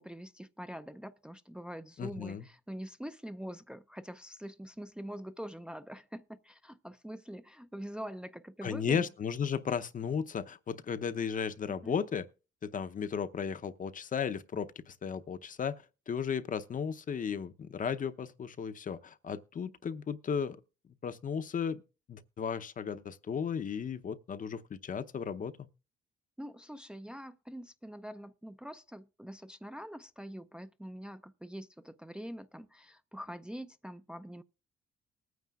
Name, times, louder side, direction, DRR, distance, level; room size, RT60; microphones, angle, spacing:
voice 1, 0.0-9.1 11.8-12.0 26.4-34.4, equal, 5° right, 0.5 m, -44 dB
voice 2, 2.0-2.5 8.6-12.2 12.6-20.6 21.0-21.8 22.1-25.7, left 7 dB, 40° left, 0.7 m, -35 dB
20.0 x 9.4 x 2.4 m
cardioid pair, 90°, 20 cm